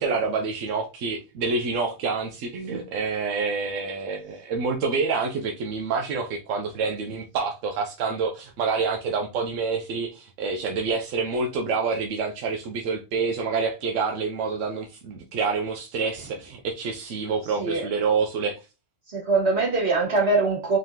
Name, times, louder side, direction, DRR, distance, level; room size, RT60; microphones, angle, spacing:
voice 1, 0.0-18.6, right 4 dB, 90° right, 1.0 m, -27 dB
voice 2, 17.6-17.9 19.1-20.8, right 3 dB, 60° right, 2.1 m, -22 dB
3.9 x 3.2 x 2.7 m
omnidirectional pair, 1.3 m